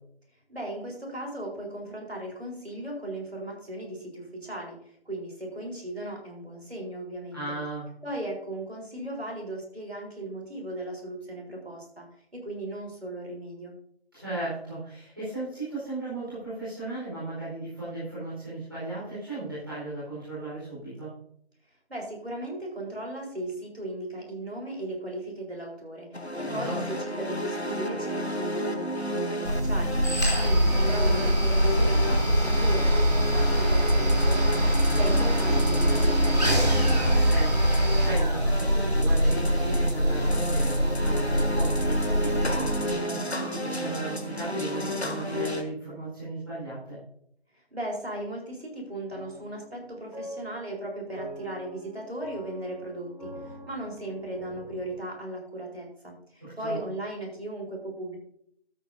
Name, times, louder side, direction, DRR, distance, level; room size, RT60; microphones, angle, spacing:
voice 1, 0.5-7.6 8.0-12.1 12.3-13.7 21.9-30.0 30.4-36.8 47.7-58.2, right 1 dB, 75° right, -1 dB, 4.3 m, -37 dB
voice 2, 7.3-7.9 14.1-21.1 26.5-26.8 37.0-47.0 56.4-56.8, right 2 dB, 20° right, -13 dB, 4.4 m, -36 dB
sound 1, 26.1-45.6, left 1 dB, 80° left, 1.5 m, -32 dB
sound 2, 29.4-42.9, equal, 40° right, 3.3 m, -23 dB
sound 3, 49.1-55.0, right 1 dB, 40° left, 2.8 m, -44 dB
13.0 x 8.6 x 2.7 m, 0.69 s
figure-of-eight pair, 175°, 32 cm